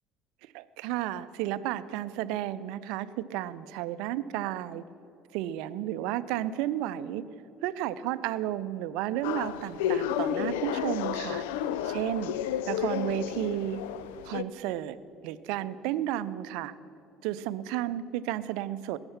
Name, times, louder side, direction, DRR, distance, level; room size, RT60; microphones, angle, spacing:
voice 1, 0.4-4.8 5.3-7.2 7.6-11.4 11.8-12.3 12.7-13.8 14.2-15.0 15.2-16.7 17.2-19.0, right 13 dB, 65° right, 14 dB, 0.5 m, -32 dB
sound 1, 9.2-14.4, left 10 dB, 70° left, 0.5 m, -31 dB
19.5 x 9.7 x 5.8 m, 2.8 s
figure-of-eight pair, 55°, 0 cm